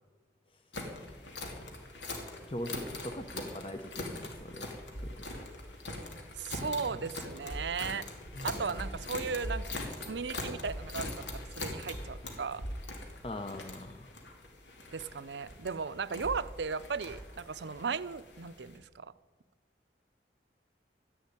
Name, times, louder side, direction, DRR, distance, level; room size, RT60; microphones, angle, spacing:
sound 1, 0.7-18.8, left 1 dB, 85° left, 2.8 m, -42 dB
voice 1, 2.5-4.7 5.0-5.4 8.4-8.6 13.2-14.1, left 1 dB, 30° left, 5 dB, 0.8 m, -41 dB
voice 2, 6.4-8.1 8.4-9.7 10.0-11.2 11.5-12.6 14.9-19.1, right 5 dB, 75° right, 14 dB, 0.6 m, -36 dB
13.0 x 11.0 x 9.7 m, 1.4 s
head